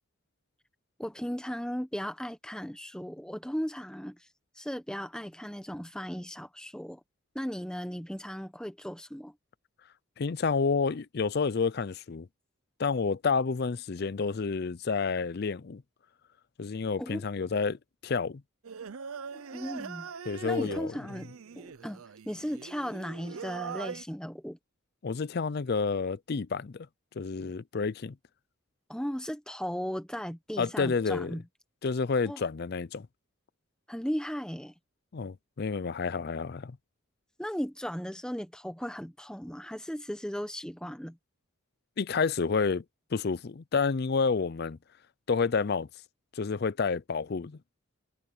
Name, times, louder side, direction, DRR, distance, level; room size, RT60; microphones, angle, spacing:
voice 1, 1.0-4.2 4.5-7.0 7.3-9.3 17.0-17.3 19.5-20.1 20.4-24.6 28.9-31.4 32.3-32.4 33.9-34.7 37.4-41.2, equal, 5° left, 1.1 m, -36 dB
voice 2, 10.2-12.3 12.8-15.8 16.6-18.4 20.3-20.9 25.0-26.9 27.2-28.2 30.6-31.3 31.8-33.1 35.1-36.8 42.0-42.8 43.1-44.8 45.3-45.9 46.3-47.6, left 5 dB, 50° left, 0.5 m, -29 dB
Singing, 18.6-24.0, right 6 dB, 80° right, 0.6 m, -42 dB
head